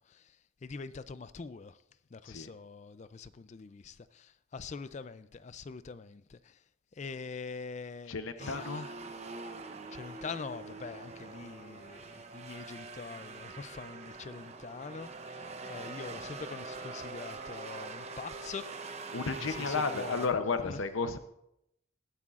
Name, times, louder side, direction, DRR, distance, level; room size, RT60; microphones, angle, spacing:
voice 1, 0.0-1.8 2.1-6.6 6.9-8.9 9.9-19.0 19.3-20.3 20.6-20.8, left 4 dB, 35° left, 0.3 m, -44 dB
voice 2, 8.1-8.9 19.1-21.2, left 4 dB, 80° left, 0.7 m, -33 dB
sound 1, 8.4-20.3, right 3 dB, 35° right, 0.7 m, -44 dB
19.5 x 9.7 x 2.5 m
head